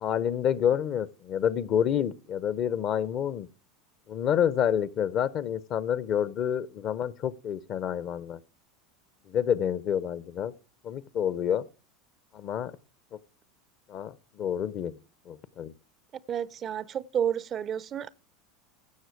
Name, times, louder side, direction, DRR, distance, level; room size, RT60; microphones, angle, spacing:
voice 1, 0.0-3.5 4.1-8.4 9.3-10.5 10.8-11.7 12.3-12.8 13.9-15.0 15.3-15.7, left 9 dB, 40° left, 0.7 m, -28 dB
voice 2, 16.3-18.1, right 9 dB, 35° right, 0.5 m, -30 dB
16.0 x 6.3 x 4.7 m
figure-of-eight pair, 80°, 0 cm